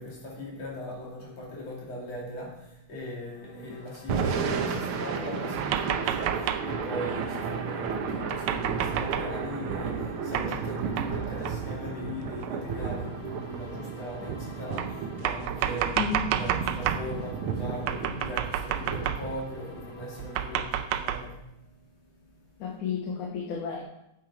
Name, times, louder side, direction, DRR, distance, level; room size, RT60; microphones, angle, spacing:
voice 1, 0.0-16.0 16.3-22.5, left 1 dB, 55° left, -4 dB, 3.8 m, -39 dB
sound 1, 3.2-20.8, left 2 dB, 35° left, 2.9 m, -51 dB
Thunder / Rain, 3.9-20.2, right 5 dB, 65° right, 1.4 m, -33 dB
sound 2, 5.6-6.8 8.3-9.3 10.3-10.7 11.0-11.1 11.5-11.6 12.4-12.5 13.5-13.6 14.8-17.1 17.9-19.4 20.2-21.3, right 10 dB, 80° right, 1.9 m, -30 dB
voice 2, 16.0-16.3 22.6-23.8, left 6 dB, 85° left, -2 dB, 2.8 m, -32 dB
9.2 x 9.1 x 4.8 m, 0.84 s
omnidirectional pair, 3.4 m